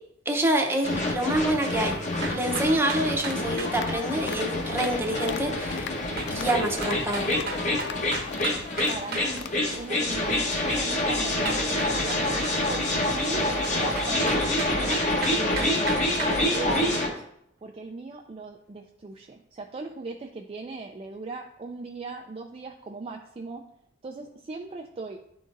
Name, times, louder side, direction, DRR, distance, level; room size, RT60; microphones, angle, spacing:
voice 1, 0.3-1.9 2.3-5.9 6.3-7.3, right 1 dB, 10° right, 2 dB, 0.7 m, -26 dB
sound 1, 0.8-17.1, left 1 dB, 40° left, 1.0 m, -27 dB
sound 2, 2.2-3.7 6.2-9.3 11.5-12.6 13.6-16.4, right 4 dB, 55° right, 1.0 m, -35 dB
sound 3, 3.1-9.9, left 6 dB, 60° left, 0.3 m, -38 dB
voice 2, 8.9-15.0 15.3-17.2 17.6-23.6 24.0-25.3, right 3 dB, 30° right, 2 dB, 0.4 m, -38 dB
10.0 x 3.9 x 2.5 m, 0.74 s
head